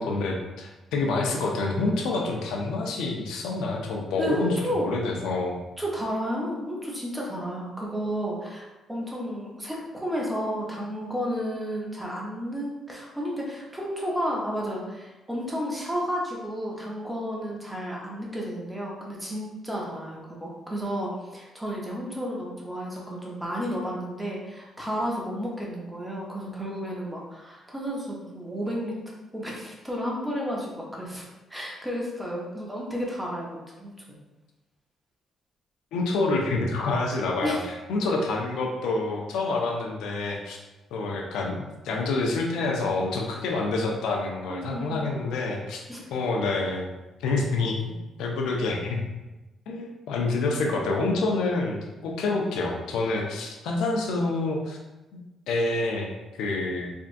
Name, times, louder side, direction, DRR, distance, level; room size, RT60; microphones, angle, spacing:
voice 1, 0.0-5.6 35.9-40.6 40.9-45.8 46.1-46.9 47.2-49.0 49.7-54.8 55.1-55.2 55.5-56.9, left 3 dB, 85° left, 1 dB, 0.5 m, -27 dB
voice 2, 4.2-4.9 5.8-29.0 29.3-31.2 31.5-34.2 37.4-37.6 44.5-45.1 45.9-46.1, equal, 10° right, -3 dB, 0.9 m, -32 dB
3.5 x 2.5 x 2.5 m, 1.1 s
cardioid pair, 90°, 0 cm